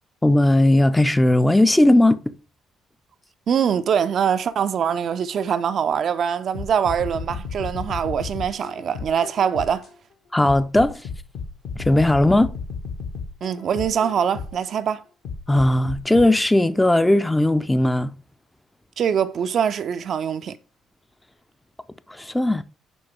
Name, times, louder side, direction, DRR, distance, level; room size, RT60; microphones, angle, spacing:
voice 1, 0.2-2.2 10.3-11.0 11.8-12.5 15.5-18.1 22.1-22.6, left 1 dB, 10° left, 0.5 m, -17 dB
voice 2, 3.5-9.9 13.4-15.0 19.0-20.6, right 8 dB, 50° right, 0.5 m, -23 dB
sound 1, 6.5-9.9 10.4-14.7 15.2-16.2, left 5 dB, 55° left, 1.3 m, -33 dB
7.0 x 5.3 x 3.4 m
figure-of-eight pair, 45°, 0 cm